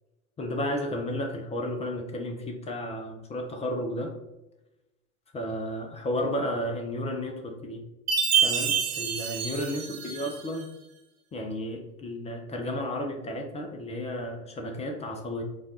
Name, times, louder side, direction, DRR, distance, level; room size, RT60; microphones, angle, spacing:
voice 1, 0.4-4.1 5.3-7.8 8.4-10.7 11.3-15.4, left 1 dB, 15° left, 3 dB, 0.5 m, -32 dB
Chime, 8.1-10.6, right 7 dB, 35° right, 1.1 m, -27 dB
4.8 x 2.3 x 4.0 m, 0.96 s
figure-of-eight pair, 90°, 44 cm